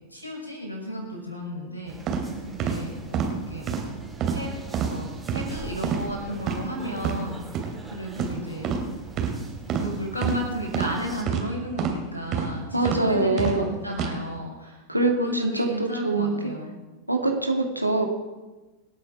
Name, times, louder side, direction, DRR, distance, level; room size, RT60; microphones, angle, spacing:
voice 1, 0.1-2.0 2.4-3.6 4.3-4.5 4.8-5.1 5.3-8.8 9.7-16.7, equal, 85° left, -1 dB, 5.8 m, -33 dB
sound 1, 1.9-11.2, right 3 dB, 5° right, 3.5 m, -43 dB
sound 2, 2.1-2.2 2.6-2.8 3.1-3.3 3.7-3.8 4.2-4.4 4.7-4.9 5.3-5.5 5.8-6.0 6.4-6.6 7.0-7.2 7.5-7.7 8.2-8.3 8.6-8.8 9.2-9.3 9.7-9.9 10.2-10.4 10.7-10.9 11.3-11.4 11.8-12.0 12.3-12.5 12.8-13.0 13.4-13.6 13.9-14.1, right 8 dB, 35° right, 2.8 m, -26 dB
voice 2, 12.7-13.7 14.9-16.4 17.1-18.1, right 2 dB, 90° right, 2 dB, 2.2 m, -24 dB
26.0 x 8.7 x 4.9 m, 1.2 s
figure-of-eight pair, 90°, 0 cm